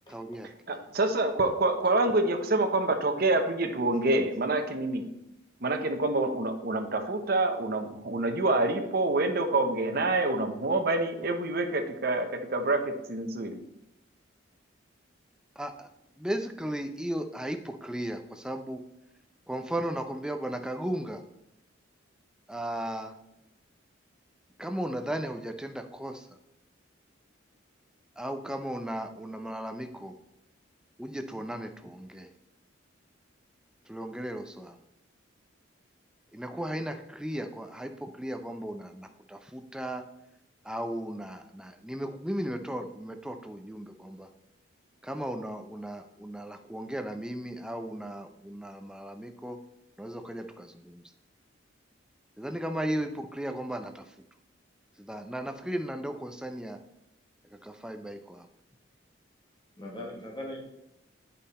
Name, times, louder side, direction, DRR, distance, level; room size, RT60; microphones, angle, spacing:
voice 1, 0.1-0.5 15.6-15.9 16.2-18.8 19.5-21.2 22.5-23.1 24.6-26.4 28.2-30.1 31.0-32.3 33.9-34.8 36.3-40.0 40.6-44.3 45.0-49.6 50.0-51.0 52.4-54.2 55.0-56.8 57.4-58.5, right 1 dB, 5° right, 6 dB, 0.5 m, -36 dB
voice 2, 0.7-5.1 5.6-13.6, right 2 dB, 50° right, 6 dB, 0.9 m, -27 dB
voice 3, 59.8-60.6, left 1 dB, 25° left, -2 dB, 1.4 m, -40 dB
8.8 x 5.6 x 4.2 m, 0.85 s
head